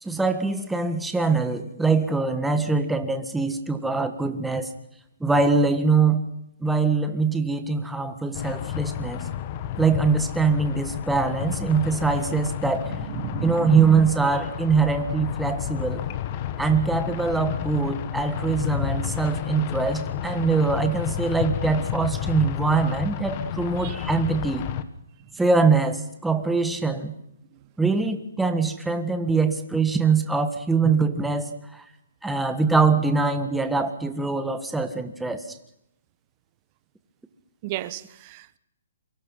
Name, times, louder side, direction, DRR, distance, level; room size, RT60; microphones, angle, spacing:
voice 1, 0.0-4.7 5.2-6.2 6.6-9.3 9.8-12.9 13.4-16.0 16.6-24.7 25.4-27.1 27.8-31.8 32.2-35.6, right 4 dB, 5° right, 7 dB, 1.6 m, -23 dB
sound 1, 8.3-24.8, left 10 dB, 30° left, 1.5 m, -31 dB
voice 2, 13.2-13.7 23.8-23.9 37.6-38.6, right 15 dB, 30° right, 16 dB, 1.2 m, -34 dB
27.5 x 24.5 x 5.6 m, 0.77 s
hypercardioid pair, 160°, 0 cm